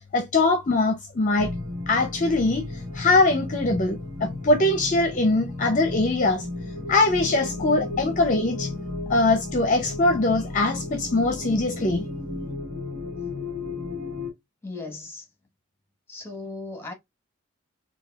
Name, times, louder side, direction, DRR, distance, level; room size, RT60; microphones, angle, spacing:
voice 1, 0.1-1.5 1.9-2.6 2.9-6.5 6.9-8.7 9.1-12.0, left 2 dB, 40° left, 0.6 m, -22 dB
sound 1, 1.4-14.3, left 2 dB, 55° right, 1.4 m, -34 dB
voice 2, 14.6-15.2 16.1-16.9, left 3 dB, 10° left, 1.3 m, -37 dB
4.6 x 2.3 x 2.3 m
head